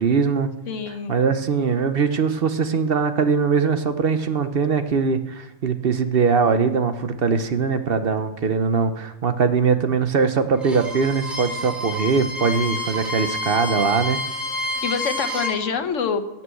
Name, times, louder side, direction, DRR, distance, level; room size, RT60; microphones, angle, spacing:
voice 1, 0.0-0.5 0.9-14.2, right 5 dB, 55° right, 10 dB, 1.0 m, -21 dB
voice 2, 0.7-1.1 14.8-16.4, left 6 dB, 80° left, 9 dB, 1.4 m, -26 dB
Bowed string instrument, 10.6-15.6, left 1 dB, ahead, 2.1 m, -29 dB
17.5 x 6.0 x 7.7 m, 0.98 s
omnidirectional pair, 1.3 m